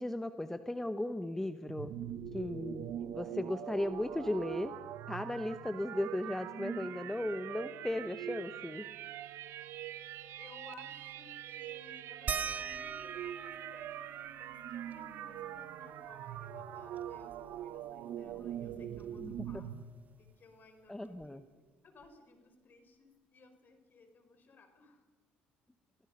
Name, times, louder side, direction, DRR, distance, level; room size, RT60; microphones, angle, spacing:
voice 1, 0.0-1.9 2.3-4.7 5.1-8.9 19.2-19.5 20.9-21.4, left 1 dB, 10° left, 10 dB, 1.0 m, -36 dB
sound 1, 1.7-19.8, right 11 dB, 70° right, 1.2 m, -43 dB
voice 2, 10.4-19.7 20.2-21.4 21.8-25.0, left 3 dB, 45° left, 7 dB, 4.6 m, -59 dB
sound 2, 12.3-17.4 17.8-17.9 18.2-19.9 21.2-21.3 22.0-22.1, right 6 dB, 35° right, 0.5 m, -44 dB
27.5 x 17.5 x 5.5 m, 1.4 s
supercardioid pair, 80°, 5 cm